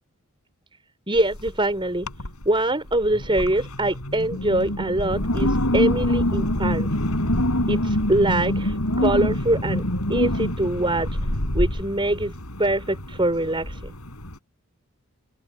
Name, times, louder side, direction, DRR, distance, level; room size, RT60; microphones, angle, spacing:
voice 1, 1.1-2.1 2.4-6.9 7.7-9.8 10.1-11.1 11.5-12.3 12.6-13.9, right 1 dB, 20° right, 4.6 m, -23 dB
Wind, 1.2-1.6 2.0-2.5 2.9-14.3, left 1 dB, 80° left, 5.2 m, -25 dB
head